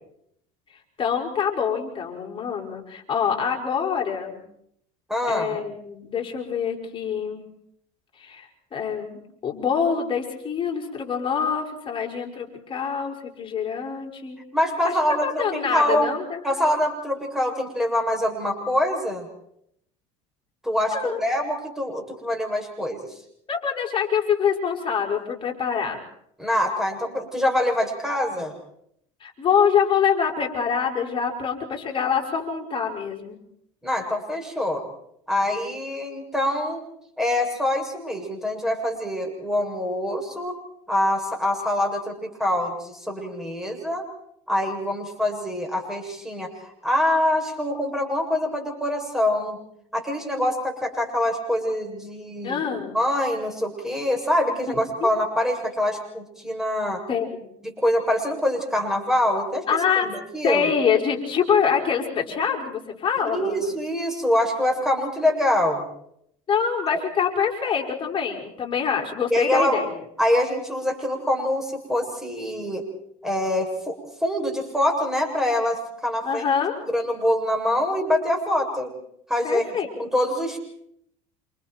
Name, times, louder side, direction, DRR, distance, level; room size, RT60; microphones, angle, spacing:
voice 1, 1.0-4.4 5.3-7.4 8.2-14.4 14.8-16.4 20.9-21.2 23.5-26.0 29.2-33.4 52.4-53.0 54.7-55.1 57.1-57.5 59.7-60.1 60.4-63.7 66.5-70.0 76.2-76.8 79.4-79.9, left 7 dB, 30° left, 1 dB, 6.1 m, -25 dB
voice 2, 5.1-5.6 14.5-16.1 16.4-19.3 20.6-23.0 26.4-28.5 33.8-34.8 35.3-36.8 37.2-40.5 40.9-44.0 44.5-46.5 46.8-49.6 49.9-52.6 52.9-57.0 57.6-59.6 60.0-60.7 63.3-65.8 66.9-67.0 69.3-69.8 70.2-72.8 73.2-73.9 74.2-76.4 76.9-78.9 79.3-80.6, left 1 dB, 5° right, 1 dB, 7.5 m, -24 dB
29.0 x 27.5 x 4.6 m, 0.73 s
supercardioid pair, 95°, 16 cm